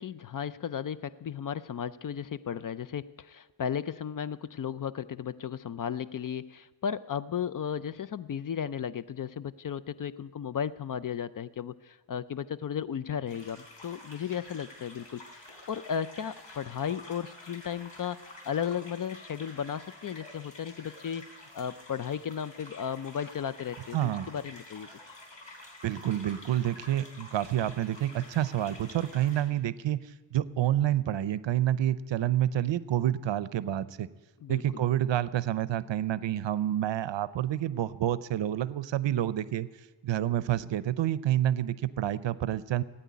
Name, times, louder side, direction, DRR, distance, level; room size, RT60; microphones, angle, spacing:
voice 1, 0.0-18.2 18.4-25.2 34.4-34.8, left 8 dB, 45° left, 16 dB, 0.4 m, -35 dB
sound 1, 13.3-29.4, left 2 dB, 65° left, 4.6 m, -49 dB
voice 2, 23.9-24.3 25.8-30.0 30.3-34.1 34.5-39.7 40.0-42.8, right 12 dB, 70° right, 16 dB, 0.6 m, -28 dB
16.5 x 9.2 x 9.4 m, 1.2 s
wide cardioid pair, 165°, 46 cm